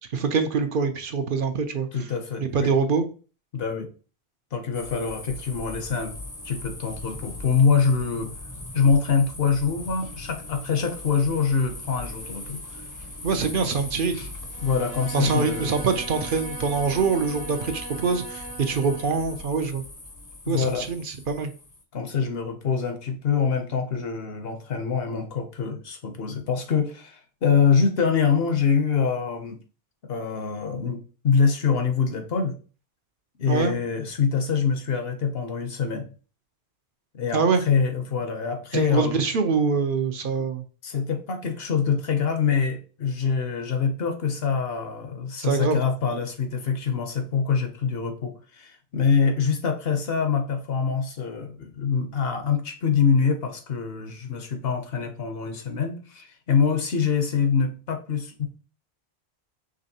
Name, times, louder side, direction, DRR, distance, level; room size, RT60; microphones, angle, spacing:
voice 1, 0.1-2.0 2.5-3.0 13.2-14.2 15.1-19.8 20.5-21.5 33.5-33.7 37.3-37.6 38.7-40.6 45.4-45.8, right 5 dB, 60° right, 7 dB, 0.7 m, -24 dB
voice 2, 1.9-2.7 3.5-3.9 4.5-6.1 6.4-8.3 8.7-12.6 14.1-14.3 14.6-15.7 20.5-20.8 21.9-29.6 30.0-32.5 33.4-36.0 37.1-39.2 40.8-58.5, left 6 dB, 70° left, 6 dB, 1.0 m, -25 dB
sound 1, 4.7-21.8, left 2 dB, 25° left, 0.5 m, -39 dB
Bowed string instrument, 14.5-19.4, right 4 dB, 85° right, 0.9 m, -40 dB
5.1 x 3.2 x 2.7 m, 0.36 s
omnidirectional pair, 1.1 m